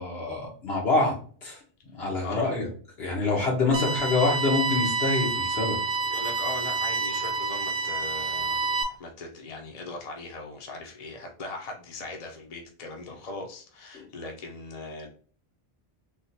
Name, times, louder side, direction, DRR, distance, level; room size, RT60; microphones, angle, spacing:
voice 1, 0.0-1.6 1.9-2.7 3.0-5.8 13.9-14.0, left 3 dB, 85° left, -1 dB, 1.4 m, -26 dB
voice 2, 2.2-2.6 6.1-8.6 9.0-15.1, left 2 dB, 40° left, 1 dB, 0.8 m, -39 dB
sound 1, 3.7-8.8, right 4 dB, 55° right, 0.7 m, -28 dB
3.6 x 2.5 x 2.7 m, 0.43 s
omnidirectional pair, 1.0 m